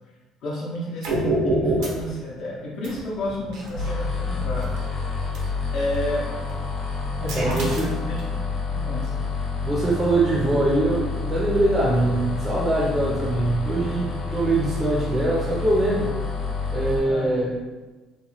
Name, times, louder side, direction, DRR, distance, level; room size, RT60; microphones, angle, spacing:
voice 1, 0.4-4.8 5.7-6.3 7.2-8.4 8.7-9.3 17.0-17.3, equal, 60° left, -5 dB, 0.5 m, -31 dB
sound 1, 1.0-2.1 2.8-4.8 5.3-5.4 5.9-6.1 6.5-8.3, right 1 dB, 80° right, 0.6 m, -27 dB
sound 2, 3.7-17.0, left 4 dB, 40° left, 0.9 m, -29 dB
voice 2, 7.2-7.9 9.6-16.1 16.7-17.6, right 2 dB, 20° right, -5 dB, 0.4 m, -23 dB
2.9 x 2.1 x 2.9 m, 1.2 s
cardioid pair, 150°, 0 cm